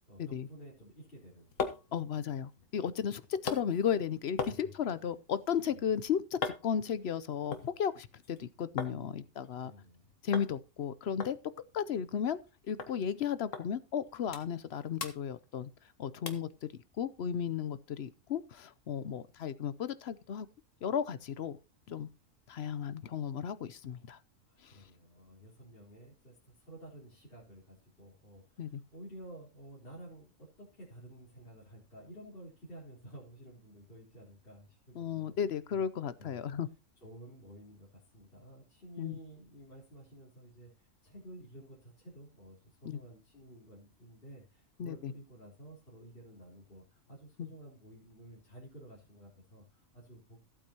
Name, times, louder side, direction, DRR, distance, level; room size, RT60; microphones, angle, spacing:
voice 1, 0.1-1.8 2.5-2.7 4.4-4.7 5.7-5.9 9.6-10.1 24.5-35.4 35.7-35.8 36.2-36.4 37.0-50.4, right 1 dB, 45° left, 4.0 m, -52 dB
sound 1, 1.1-9.0 9.3-10.0 10.3-10.5 10.8-10.9 11.2-12.5 12.8-12.9 13.5-13.7 14.0-14.7 15.0-15.9 16.3-16.5 17.0-17.1, left 5 dB, 75° left, 1.7 m, -41 dB
voice 2, 1.9-9.7 10.2-11.4 11.7-12.4 12.7-15.7 16.0-16.7 17.0-20.5 20.8-21.6 21.9-22.1 22.5-24.2 28.6-28.8 35.0-36.7 39.0-39.2 42.8-43.0 44.8-45.1 47.4-47.5, left 8 dB, 60° left, 0.9 m, -34 dB
14.5 x 8.6 x 2.9 m
omnidirectional pair, 1.3 m